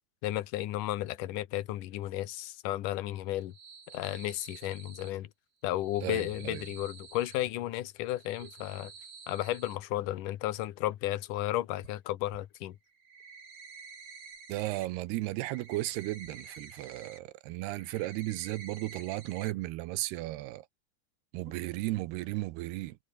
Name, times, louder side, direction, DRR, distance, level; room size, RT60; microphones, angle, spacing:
voice 1, 0.2-3.5 3.9-5.3 5.6-8.9 9.3-12.8, left 15 dB, 65° left, 2.4 m, -33 dB
sound 1, 3.3-5.1 5.7-7.4 8.0-9.8 11.8-11.9 12.3-12.4 12.9-14.9 15.2-17.2 17.5-19.5 19.8-19.9 20.3-20.4 21.4-21.6 21.9-22.0, right 5 dB, 65° right, 7.6 m, -50 dB
voice 2, 6.0-6.7 14.5-20.7 21.3-23.0, right 17 dB, 80° right, 2.8 m, -35 dB
omnidirectional pair, 4.8 m